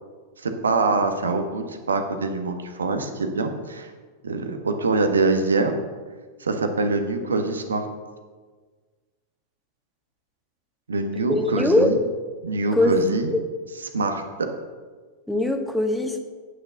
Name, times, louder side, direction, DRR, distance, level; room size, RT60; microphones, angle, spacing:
voice 1, 0.4-3.9 4.2-5.7 6.4-7.9 10.9-12.0 12.4-13.3 13.9-14.5, right 3 dB, 80° right, 6 dB, 1.3 m, -24 dB
voice 2, 11.3-11.9 12.7-13.4 15.3-16.2, left 2 dB, 5° left, 4 dB, 1.4 m, -21 dB
9.5 x 6.5 x 7.0 m, 1.4 s
figure-of-eight pair, 95°, 0 cm